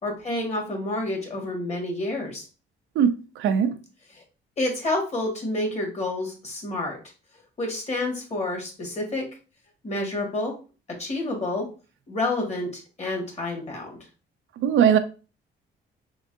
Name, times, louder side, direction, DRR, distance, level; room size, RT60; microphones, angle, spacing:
voice 1, 0.0-2.4 4.6-7.0 7.6-9.3 9.8-10.5 11.0-11.6 12.1-14.0, left 2 dB, 35° left, 1.7 m, -29 dB
voice 2, 3.0-3.7 14.6-15.0, right 8 dB, 80° right, 0.5 m, -20 dB
3.9 x 3.2 x 2.6 m
cardioid pair, 90°, 20 cm